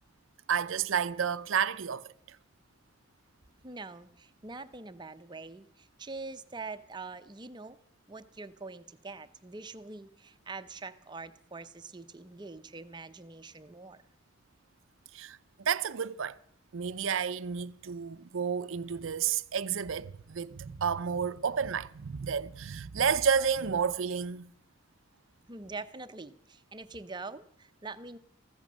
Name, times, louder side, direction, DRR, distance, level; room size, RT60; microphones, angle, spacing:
voice 1, 0.5-2.1 15.1-16.4 16.7-24.5, right 7 dB, 70° right, 0.5 m, -31 dB
voice 2, 3.6-7.8 8.1-14.0 25.5-28.2, right 3 dB, 20° right, 0.6 m, -44 dB
14.5 x 14.0 x 6.2 m
head